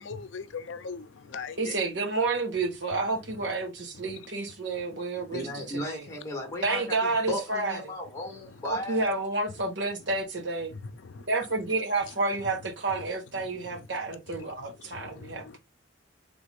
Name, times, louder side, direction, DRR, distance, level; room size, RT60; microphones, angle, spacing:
voice 1, 0.0-1.7 10.7-11.2 13.4-13.8 14.3-14.5 15.0-15.6, left 5 dB, 80° left, 0.5 m, -40 dB
voice 2, 1.6-5.5 5.9-6.0 6.6-7.8 8.6-10.7 11.3-15.6, right 3 dB, 65° right, 1.1 m, -30 dB
voice 3, 5.3-9.1, left 1 dB, 15° left, 0.9 m, -36 dB
3.5 x 2.4 x 3.4 m
head